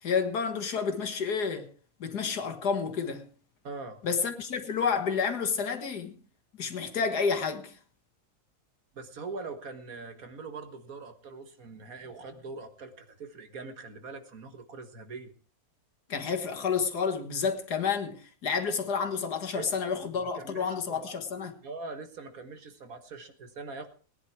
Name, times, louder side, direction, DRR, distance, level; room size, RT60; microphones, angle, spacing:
voice 1, 0.0-1.7 2.0-3.3 4.0-6.1 6.6-7.8 16.1-21.5, left 6 dB, 85° left, 2.2 m, -30 dB
voice 2, 3.6-4.0 8.9-15.3 19.5-21.2 21.6-23.9, right 4 dB, 65° right, 1.9 m, -42 dB
19.0 x 10.5 x 4.7 m
omnidirectional pair, 1.7 m